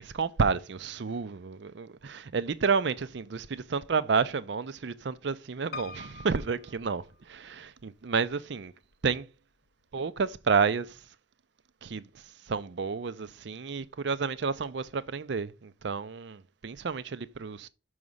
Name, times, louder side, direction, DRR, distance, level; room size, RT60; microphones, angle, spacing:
voice 1, 0.0-8.7 9.0-9.3 9.9-11.1 11.8-17.7, right 5 dB, 60° right, 0.5 m, -30 dB
Piano, 5.7-7.7 8.3-9.0 9.4-9.5 9.7-9.8, left 4 dB, 50° left, 0.4 m, -45 dB
6.4 x 5.9 x 5.4 m
head